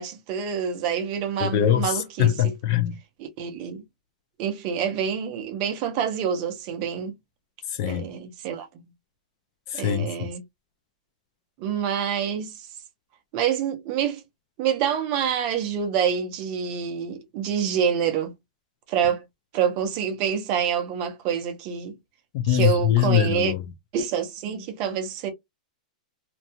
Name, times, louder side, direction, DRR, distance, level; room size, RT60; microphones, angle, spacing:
voice 1, 0.0-2.5 3.2-3.8 4.4-7.1 7.9-8.7 9.7-10.4 11.6-12.7 13.3-14.2 14.6-18.3 18.9-19.2 19.5-22.0 22.5-23.5 23.9-25.3, right 8 dB, 25° right, 0.5 m, -27 dB
voice 2, 1.4-3.0 7.8-8.1 9.7-10.3 22.3-23.6, left 11 dB, 30° left, 0.3 m, -22 dB
2.6 x 2.1 x 2.8 m
supercardioid pair, 180°, 4 cm